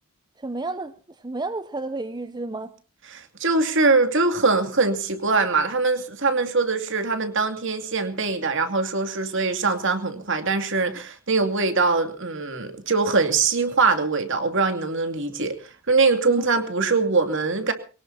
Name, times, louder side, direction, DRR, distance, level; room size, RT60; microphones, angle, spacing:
voice 1, 0.4-0.9 1.2-2.7 16.4-16.5, right 2 dB, 20° right, 0.7 m, -31 dB
voice 2, 3.1-15.6 15.9-17.7, right 4 dB, 60° right, 2.6 m, -22 dB
23.0 x 18.5 x 2.8 m
head